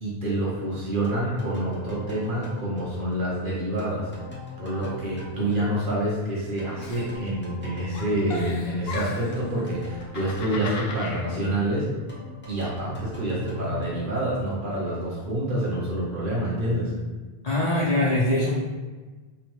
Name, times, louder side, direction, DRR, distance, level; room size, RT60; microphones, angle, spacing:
voice 1, 0.0-4.1 4.6-11.9 12.5-16.9, right 1 dB, 55° right, -6 dB, 1.2 m, -27 dB
sound 1, 1.0-6.3 6.6-14.8, left 2 dB, 15° left, 0.6 m, -41 dB
Giggle, 6.8-7.6 7.9-9.4 9.9-11.2, left 3 dB, 75° left, 0.9 m, -36 dB
voice 2, 17.4-18.6, left 1 dB, 40° left, -6 dB, 1.0 m, -22 dB
3.3 x 3.3 x 3.1 m, 1.3 s
omnidirectional pair, 1.1 m